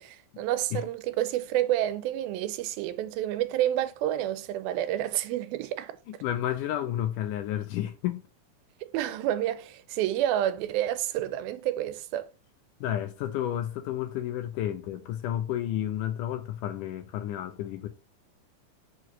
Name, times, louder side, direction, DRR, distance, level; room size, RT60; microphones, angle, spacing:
voice 1, 0.0-6.0 8.8-12.3, right 12 dB, 90° right, 2.5 m, -29 dB
voice 2, 6.1-8.2 12.8-17.9, left 11 dB, 75° left, 2.0 m, -31 dB
6.4 x 4.6 x 6.1 m
omnidirectional pair, 4.2 m